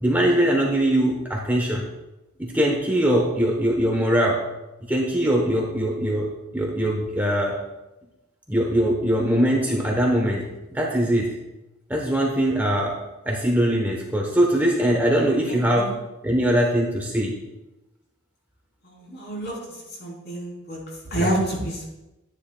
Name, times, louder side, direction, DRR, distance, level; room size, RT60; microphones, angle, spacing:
voice 1, 0.0-1.8 2.4-4.4 4.9-6.3 6.5-7.6 8.5-11.3 11.9-13.0 13.2-15.9 16.2-17.4 21.1-21.3, right 1 dB, 10° right, -1 dB, 1.0 m, -22 dB
voice 2, 15.5-15.9 18.8-19.6 20.0-20.8 21.1-21.9, right 1 dB, 50° left, -3 dB, 3.6 m, -28 dB
12.0 x 10.5 x 2.3 m, 1.0 s
head